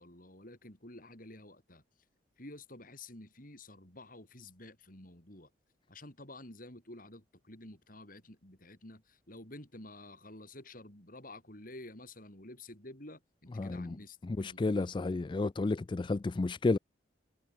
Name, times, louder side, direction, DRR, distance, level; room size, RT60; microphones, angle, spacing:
voice 1, 0.0-1.8 2.4-5.5 5.9-14.9, left 2 dB, 45° left, 6.3 m, -50 dB
voice 2, 13.6-13.9 14.4-16.8, left 3 dB, 25° left, 0.3 m, -31 dB
head